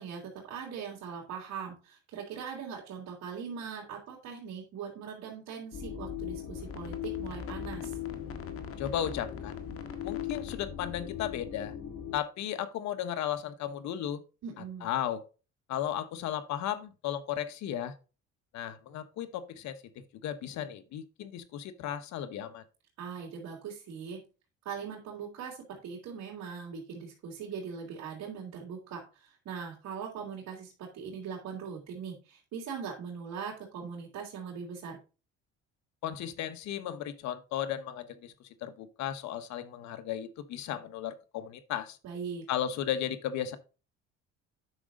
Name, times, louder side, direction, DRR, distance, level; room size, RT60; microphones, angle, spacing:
voice 1, 0.0-8.0 14.4-14.9 23.0-24.2 24.6-35.0 42.0-42.5, right 6 dB, 65° right, 3.1 m, -41 dB
sound 1, 5.7-12.2, left 9 dB, 50° left, 1.7 m, -38 dB
voice 2, 8.8-9.5 10.0-11.7 12.1-14.2 14.8-15.2 15.7-17.9 18.5-19.8 20.2-22.6 36.0-38.3 38.6-42.0 42.5-43.6, left 10 dB, 70° left, 1.2 m, -35 dB
9.5 x 6.2 x 3.8 m
cardioid pair, 110°, 29 cm